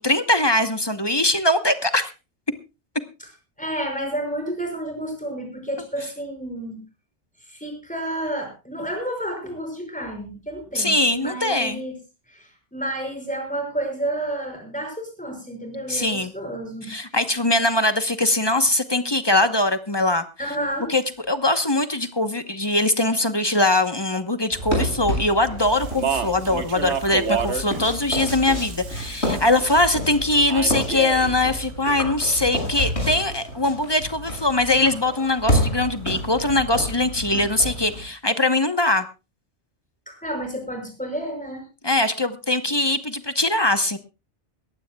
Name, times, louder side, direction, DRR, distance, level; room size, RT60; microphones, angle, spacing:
voice 1, 0.0-2.1 10.7-11.8 15.9-16.3 16.9-20.2 20.9-39.0 41.8-44.0, left 2 dB, 25° left, 10 dB, 1.0 m, -21 dB
voice 2, 3.6-6.8 7.5-11.9 12.3-16.9 20.4-20.9 40.1-41.7, right 1 dB, 5° left, 3 dB, 5.8 m, -30 dB
sound 1, 24.5-38.0, equal, 65° left, 6.8 m, -29 dB
Speech, 25.6-29.8 30.5-31.3, right 6 dB, 75° right, 1.5 m, -30 dB
21.5 x 15.5 x 2.3 m, 0.28 s
omnidirectional pair, 1.2 m